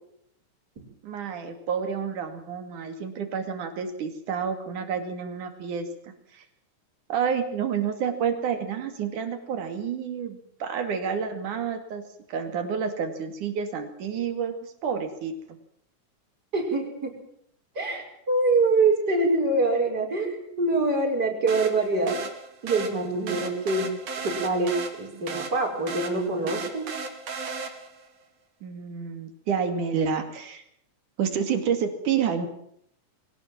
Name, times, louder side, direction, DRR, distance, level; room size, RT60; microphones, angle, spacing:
voice 1, 1.0-5.9 6.3-6.4 7.1-12.0 12.3-15.3 28.6-30.6 31.2-32.5, right 7 dB, 85° right, 7 dB, 3.9 m, -29 dB
voice 2, 16.5-17.1 17.8-22.2 22.6-23.9 24.2-26.9, right 3 dB, 30° right, 1 dB, 5.7 m, -25 dB
sound 1, 21.5-28.1, right 4 dB, 60° right, 3.6 m, -36 dB
22.5 x 17.5 x 7.6 m, 0.70 s
omnidirectional pair, 3.5 m